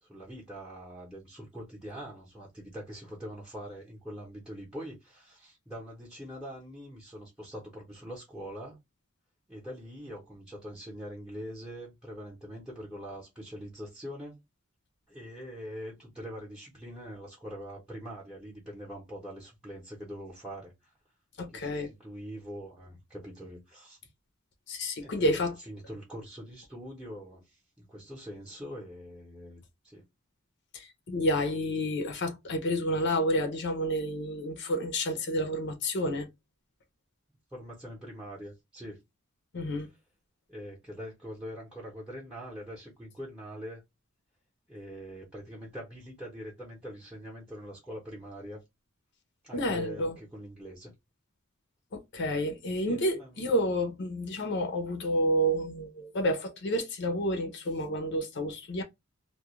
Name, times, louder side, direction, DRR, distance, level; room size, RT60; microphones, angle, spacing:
voice 1, 0.0-8.8 9.5-14.4 15.1-20.9 21.5-24.0 25.0-30.1 37.5-39.0 40.5-43.8 44.7-48.6 49.4-50.9 52.8-53.5, equal, 5° right, 0.7 m, -43 dB
voice 2, 21.4-21.9 24.7-25.6 30.7-36.3 39.5-39.9 49.5-50.2 51.9-58.8, equal, 55° left, 0.6 m, -30 dB
2.3 x 2.2 x 2.9 m
head